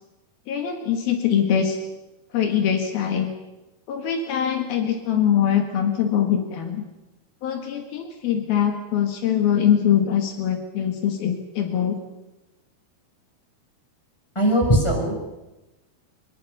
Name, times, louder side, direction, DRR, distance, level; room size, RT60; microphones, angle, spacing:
voice 1, 0.5-1.8 2.3-3.3 3.9-6.8 7.4-12.0, left 9 dB, 75° left, 5 dB, 3.6 m, -22 dB
voice 2, 14.3-15.1, right 1 dB, 5° left, 1 dB, 5.7 m, -19 dB
23.0 x 22.5 x 6.8 m, 1.0 s
omnidirectional pair, 4.4 m